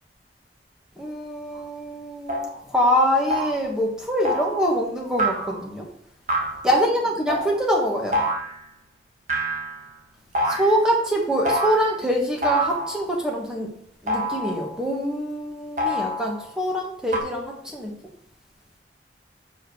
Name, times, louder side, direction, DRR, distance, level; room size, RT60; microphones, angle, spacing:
voice 1, 1.0-5.9 6.6-8.2 10.4-13.8 14.0-17.9, equal, 5° right, -1 dB, 1.4 m, -24 dB
sound 1, 1.5-1.6 2.3-2.6 3.3-3.7 4.2-4.7 5.2-5.7 6.3-6.6 7.3-7.6 8.1-8.6 9.3-9.9 10.3-10.8 11.4-11.9 12.4-13.1 14.1-14.7 15.8-16.5 17.1-17.2, equal, 45° right, 1.8 m, -26 dB
7.9 x 6.3 x 4.8 m, 0.67 s
head